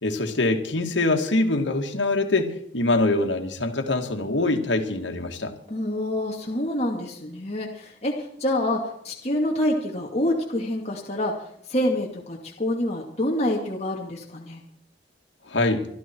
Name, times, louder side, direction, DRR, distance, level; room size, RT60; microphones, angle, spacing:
voice 1, 0.0-5.5 15.5-15.9, left 2 dB, 80° left, 4 dB, 2.2 m, -24 dB
voice 2, 5.7-11.3 11.7-14.6, left 1 dB, 35° left, -2 dB, 2.3 m, -27 dB
25.5 x 12.5 x 4.6 m, 0.69 s
head